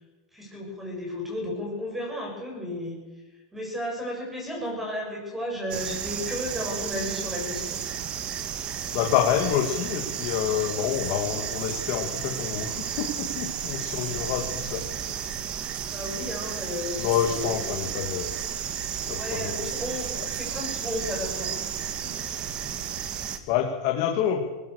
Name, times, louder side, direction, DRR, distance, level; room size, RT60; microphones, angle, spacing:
voice 1, 0.3-3.0 3.5-7.8 15.8-17.6 19.1-21.6 22.0-22.2, left 1 dB, 5° right, -1 dB, 7.6 m, -33 dB
sound 1, 5.7-23.4, right 9 dB, 35° right, 1.7 m, -33 dB
voice 2, 8.9-15.3 16.9-18.3 19.1-19.6 20.2-20.3 23.5-24.4, left 9 dB, 50° left, 1 dB, 2.6 m, -28 dB
20.5 x 19.0 x 6.8 m, 1.2 s
supercardioid pair, 150°, 3 cm